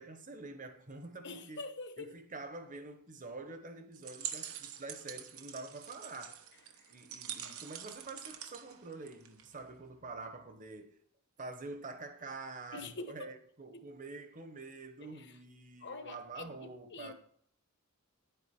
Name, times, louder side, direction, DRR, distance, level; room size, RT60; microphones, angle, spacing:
voice 1, 0.0-1.6 2.0-6.4 6.9-11.0 11.4-17.1, right 3 dB, 40° right, 1.2 m, -47 dB
voice 2, 1.2-2.1 12.7-13.1 13.7-13.9 15.0-15.4 15.8-17.1, left 3 dB, 55° left, 1.2 m, -45 dB
sound 1, 3.9-9.6, right 9 dB, 75° right, 1.0 m, -45 dB
10.5 x 8.2 x 4.4 m
head